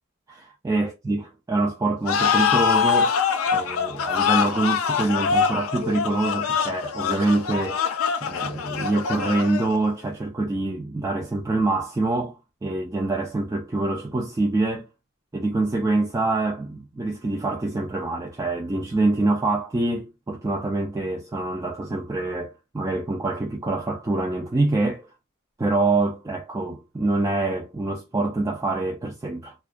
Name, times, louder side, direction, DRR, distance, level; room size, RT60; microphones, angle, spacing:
voice 1, 0.3-3.2 3.5-7.8 8.2-14.9 15.3-25.1 25.6-29.5, right 2 dB, 15° right, 0.3 m, -25 dB
sound 1, 2.1-9.9, left 6 dB, 75° left, 0.4 m, -24 dB
2.3 x 2.2 x 2.4 m
head